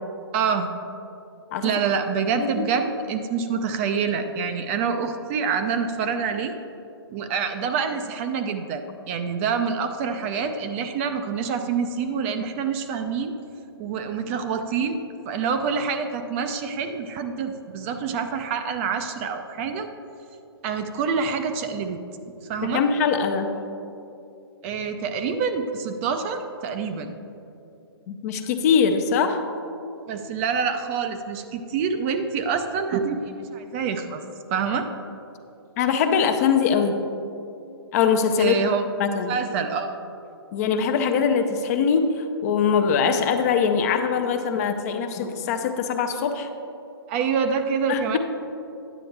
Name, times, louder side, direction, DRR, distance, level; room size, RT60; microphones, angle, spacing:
voice 1, 0.3-0.7 1.6-6.5 7.1-13.3 13.8-15.0 15.3-19.9 20.6-22.0 22.5-22.8 24.6-27.2 30.1-34.2 34.5-34.9 38.4-38.8 39.3-40.0 47.1-48.2, right 6 dB, 30° right, 7 dB, 0.5 m, -26 dB
voice 2, 22.7-23.6 28.1-29.4 35.8-37.0 37.9-38.6 39.0-39.3 40.5-46.5 47.9-48.2, left 6 dB, 35° left, 7 dB, 0.6 m, -22 dB
9.7 x 7.6 x 3.3 m, 2.7 s
hypercardioid pair, 135°, 14 cm